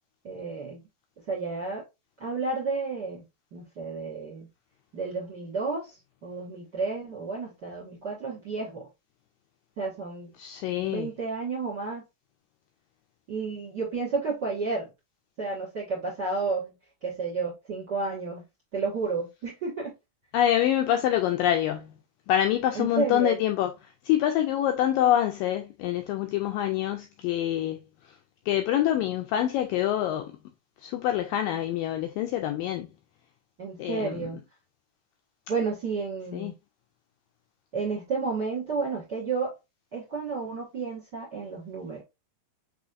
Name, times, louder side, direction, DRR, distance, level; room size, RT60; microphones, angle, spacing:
voice 1, 0.2-0.8 1.3-1.8 2.2-3.2 3.5-4.5 4.9-8.9 9.8-10.3 10.8-12.0 13.3-14.9 15.4-16.7 17.0-18.4 18.7-19.9 22.7-23.4 33.6-34.4 35.5-36.5 37.7-39.5 39.9-42.0, right 4 dB, 50° right, 1.3 m, -31 dB
voice 2, 10.4-11.1 20.3-21.9 22.3-23.7 24.1-27.8 28.5-30.3 30.8-32.9 33.8-34.3 36.3-36.5, left 11 dB, 85° left, 2.0 m, -26 dB
6.1 x 3.1 x 2.5 m
omnidirectional pair, 4.5 m